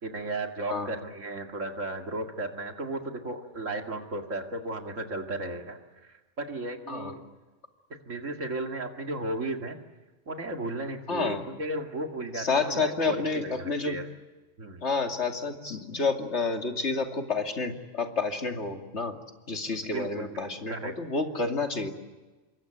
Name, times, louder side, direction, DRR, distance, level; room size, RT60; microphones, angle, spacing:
voice 1, 0.0-7.2 8.1-9.8 10.3-14.1 14.6-14.9 19.9-20.4 20.7-20.9, right 2 dB, 90° right, 4 dB, 2.6 m, -35 dB
voice 2, 11.1-11.4 12.3-14.0 14.8-19.2 19.5-21.9, left 4 dB, 65° left, 4 dB, 2.9 m, -29 dB
27.0 x 23.0 x 8.9 m, 1.2 s
omnidirectional pair, 1.3 m